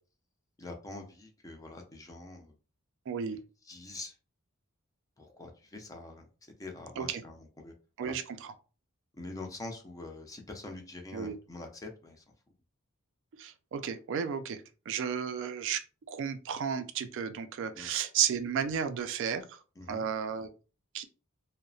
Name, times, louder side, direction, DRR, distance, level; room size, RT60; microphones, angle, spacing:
voice 1, 0.6-2.5 3.7-4.1 5.2-6.3 6.6-7.7 8.0-8.1 9.1-12.2 17.7-17.9 19.8-20.0, left 2 dB, 15° left, 3 dB, 0.4 m, -44 dB
voice 2, 3.1-3.4 7.0-7.2 8.0-8.5 11.1-11.4 13.4-19.6 19.9-20.5 20.9-21.0, right 7 dB, 60° right, 9 dB, 0.3 m, -33 dB
2.7 x 2.0 x 2.6 m, 0.35 s
head